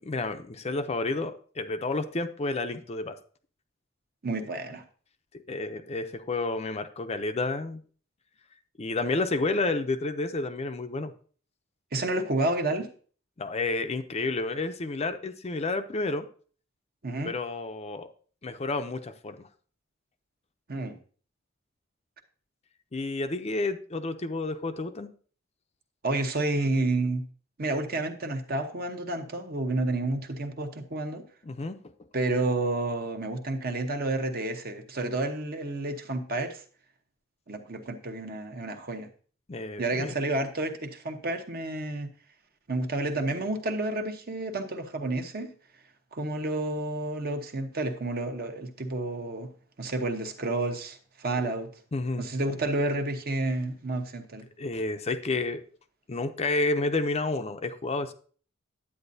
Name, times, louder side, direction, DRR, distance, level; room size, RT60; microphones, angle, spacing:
voice 1, 0.1-3.2 5.5-7.8 8.8-11.1 13.4-16.3 17.2-18.1 18.4-19.5 22.9-25.1 31.4-31.8 39.5-40.1 51.9-52.2 54.6-55.6 56.1-58.1, left 3 dB, 30° left, 0.5 m, -30 dB
voice 2, 4.2-4.8 11.9-12.9 17.0-17.3 20.7-21.0 26.0-27.2 27.6-31.2 32.1-36.6 37.5-39.1 39.8-42.1 42.7-45.5 46.1-49.5 49.8-51.7 52.2-54.5, right 2 dB, 45° right, 1.0 m, -30 dB
9.9 x 8.5 x 2.7 m
head